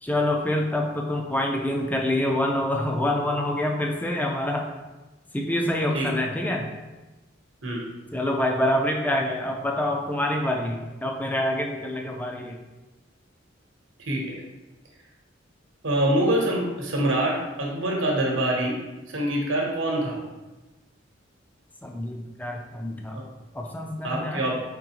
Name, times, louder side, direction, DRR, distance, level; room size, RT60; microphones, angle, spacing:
voice 1, 0.0-4.7 5.3-6.7 8.1-12.6 21.8-23.2 23.5-24.4, left 1 dB, 10° left, 1 dB, 0.4 m, -26 dB
voice 2, 5.9-6.3 7.6-7.8 14.0-14.4 15.8-18.8 19.1-20.2 23.1-23.2 24.0-24.6, right 1 dB, 90° right, -1 dB, 1.0 m, -25 dB
4.7 x 3.7 x 2.9 m, 1.1 s
head